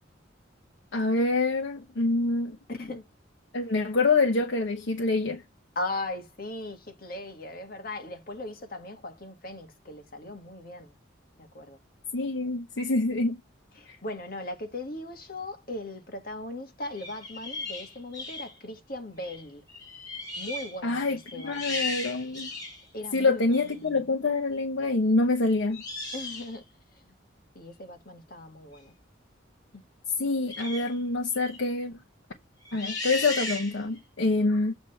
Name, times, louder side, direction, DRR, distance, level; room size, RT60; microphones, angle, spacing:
voice 1, 0.9-2.6 3.5-5.4 12.1-13.4 13.9-14.0 20.8-21.2 21.4-22.5 23.1-25.8 30.2-31.9 32.7-34.7, left 3 dB, 75° left, 0.9 m, -26 dB
voice 2, 2.7-3.0 5.8-10.9 11.4-11.8 13.7-19.6 20.4-22.0 22.9-24.0 26.1-26.7 27.0-27.1 27.6-28.9 29.7-29.8 34.2-34.3, left 2 dB, 50° left, 1.7 m, -38 dB
sound 1, 16.9-18.5 19.2-19.4 19.7-20.8 21.2-22.8 23.5-23.7 25.7-26.6 30.5-30.9 31.3-31.6 32.7-34.0, left 3 dB, 20° left, 4.0 m, -36 dB
8.1 x 3.4 x 5.5 m
head